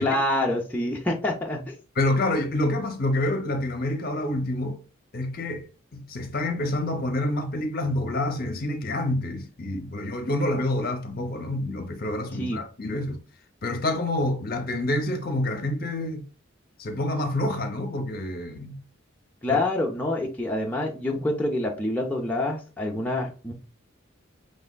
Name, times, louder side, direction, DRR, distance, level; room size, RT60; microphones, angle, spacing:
voice 1, 0.0-1.7 12.4-12.6 19.4-23.5, left 1 dB, 10° left, 0.5 m, -26 dB
voice 2, 2.0-4.8 5.1-13.2 13.6-16.2 16.8-18.8 19.5-19.6, left 1 dB, 45° left, 0.7 m, -27 dB
5.4 x 3.2 x 2.2 m
head